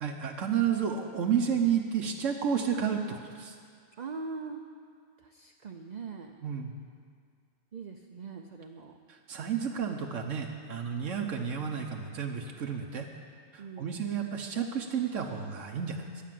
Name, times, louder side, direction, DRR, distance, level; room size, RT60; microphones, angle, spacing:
voice 1, 0.0-3.6 6.4-6.7 9.1-13.1 13.5-16.0, right 7 dB, 85° right, 1 dB, 1.2 m, -31 dB
voice 2, 4.0-4.6 5.2-6.4 7.7-8.9 13.6-14.0, right 4 dB, 45° right, 3 dB, 0.6 m, -41 dB
11.5 x 9.2 x 7.5 m, 2.1 s
omnidirectional pair, 1.3 m